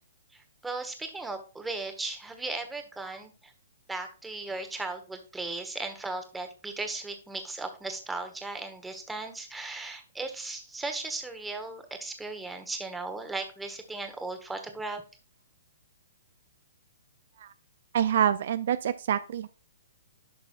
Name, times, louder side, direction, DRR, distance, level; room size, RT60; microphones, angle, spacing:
voice 1, 0.3-3.5 3.9-15.0, right 3 dB, 5° right, 6 dB, 1.3 m, -37 dB
voice 2, 17.9-19.5, right 9 dB, 60° right, 14 dB, 0.4 m, -26 dB
11.0 x 5.9 x 2.5 m, 0.33 s
hypercardioid pair, 130°, 0 cm